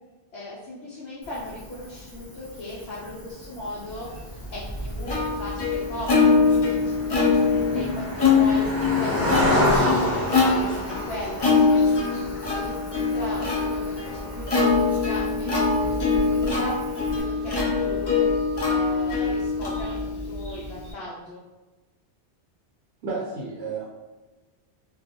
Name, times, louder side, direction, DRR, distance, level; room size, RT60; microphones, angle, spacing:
voice 1, 0.3-4.1 4.5-11.8 12.5-16.8 17.1-18.3 18.7-21.4, left 1 dB, 70° left, -6 dB, 0.8 m, -37 dB
Cricket, 1.2-17.2, left 1 dB, 20° right, 0.5 m, -31 dB
Plucked string instrument, 4.2-20.9, left 4 dB, 35° left, 0.4 m, -23 dB
voice 2, 23.0-23.8, right 4 dB, 75° right, -4 dB, 0.9 m, -31 dB
2.3 x 2.2 x 2.7 m, 1.2 s
omnidirectional pair, 1.1 m